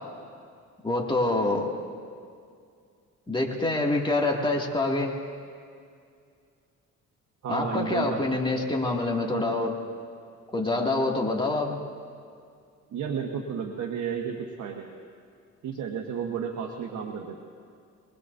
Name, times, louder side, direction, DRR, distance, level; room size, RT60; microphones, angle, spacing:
voice 1, 0.8-1.7 3.3-5.1 7.5-9.7 10.5-11.8, left 2 dB, 15° left, -1 dB, 2.4 m, -26 dB
voice 2, 7.4-8.5 12.9-15.0 15.6-17.4, right 7 dB, 65° right, 2 dB, 1.4 m, -32 dB
24.5 x 20.5 x 2.7 m, 2.3 s
cardioid pair, 90°, 30 cm